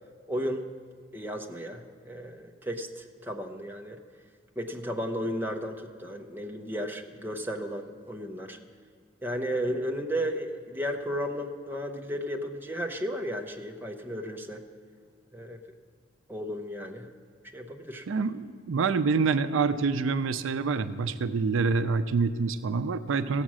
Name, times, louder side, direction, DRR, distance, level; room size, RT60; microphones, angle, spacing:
voice 1, 0.3-0.7 1.1-4.0 4.6-8.6 9.2-14.6 15.3-15.6 16.3-17.1 17.5-18.1, equal, 10° right, 2 dB, 0.7 m, -34 dB
voice 2, 18.1-23.4, right 4 dB, 80° right, 12 dB, 0.4 m, -26 dB
16.0 x 7.3 x 6.2 m, 2.1 s
head